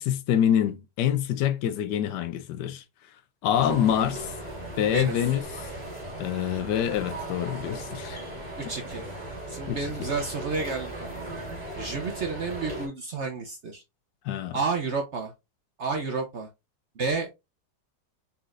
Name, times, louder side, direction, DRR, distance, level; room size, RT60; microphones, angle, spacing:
voice 1, 0.0-2.8 3.4-4.3 4.8-5.7 6.2-8.3 9.7-9.8 14.2-14.6, left 10 dB, 80° left, 1.2 m, -26 dB
sound 1, 3.5-12.9, right 1 dB, 25° right, 2.0 m, -37 dB
voice 2, 8.6-9.0 9.5-11.1 11.8-13.8 14.5-15.3 15.8-16.5 17.0-17.3, right 4 dB, 55° right, 0.8 m, -31 dB
4.2 x 4.0 x 2.5 m
omnidirectional pair, 1.9 m